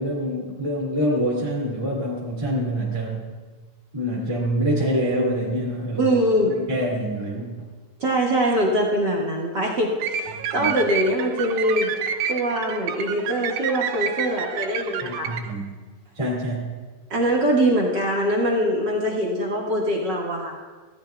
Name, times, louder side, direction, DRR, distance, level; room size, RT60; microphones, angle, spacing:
voice 1, 0.0-3.2 3.9-6.2 6.5-7.7 10.3-10.7 15.0-15.7 16.2-16.7, equal, 10° right, -5 dB, 1.7 m, -26 dB
voice 2, 6.0-6.5 8.0-11.9 12.3-15.3 17.1-20.6, equal, 45° right, -3 dB, 1.4 m, -23 dB
sound 1, 10.0-15.5, right 8 dB, 80° right, 2.7 m, -29 dB
25.0 x 15.5 x 2.3 m, 1.4 s
omnidirectional pair, 4.4 m